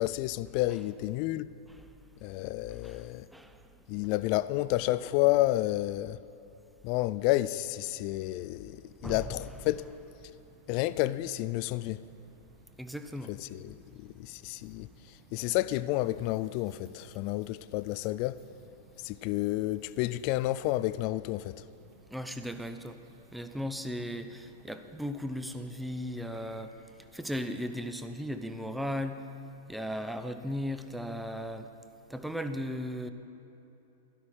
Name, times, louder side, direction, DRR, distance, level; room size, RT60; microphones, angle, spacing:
voice 1, 0.0-1.5 2.2-3.3 3.9-6.2 6.8-9.8 10.7-12.0 13.3-18.4 19.0-21.6, left 16 dB, 40° left, 0.3 m, -30 dB
sound 1, 8.0-27.2, right 4 dB, 35° right, 1.3 m, -61 dB
voice 2, 12.8-13.3 22.1-23.0 23.3-26.7 27.1-29.2 29.7-31.7 32.1-33.1, equal, ahead, 0.6 m, -36 dB
12.5 x 12.0 x 4.7 m
figure-of-eight pair, 100°, 0 cm